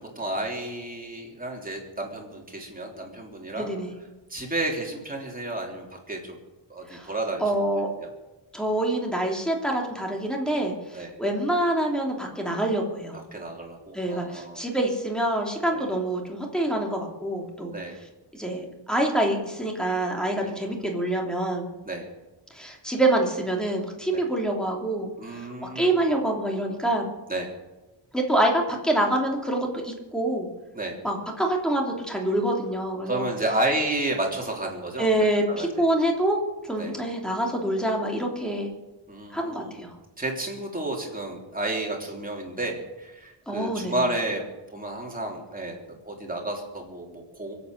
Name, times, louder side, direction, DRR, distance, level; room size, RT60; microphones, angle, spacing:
voice 1, 0.0-3.7 4.3-6.4 6.7-8.1 10.9-11.1 13.3-14.6 15.7-15.9 17.7-17.9 20.4-20.5 21.8-22.0 24.1-24.3 25.2-26.0 27.3-27.5 30.7-31.0 33.1-35.8 36.8-36.9 39.1-39.8 40.2-44.4 44.7-47.5, right 1 dB, 20° right, 0 dB, 3.4 m, -31 dB
voice 2, 3.6-4.0 6.9-7.1 7.4-7.9 8.5-13.2 13.9-17.8 18.3-21.6 22.5-25.1 25.6-27.1 28.1-30.5 31.0-33.3 35.0-36.4 36.7-38.7 39.3-39.9 43.5-44.0, right 1 dB, ahead, 0 dB, 2.9 m, -26 dB
24.0 x 8.6 x 6.6 m, 1.1 s
wide cardioid pair, 140°, 44 cm